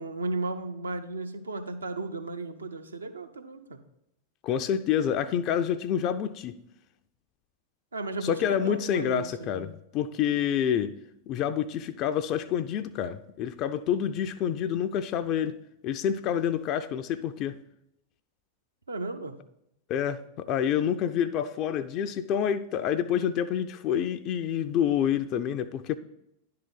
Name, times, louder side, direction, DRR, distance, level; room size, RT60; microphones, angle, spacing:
voice 1, 0.0-3.8 7.9-9.7 18.9-19.4, right 2 dB, 75° right, 0.7 m, -35 dB
voice 2, 4.4-6.6 8.2-11.0 11.3-15.6 15.8-17.6 19.9-26.0, left 9 dB, 40° left, 0.4 m, -28 dB
10.5 x 3.8 x 5.7 m
figure-of-eight pair, 90°, 0 cm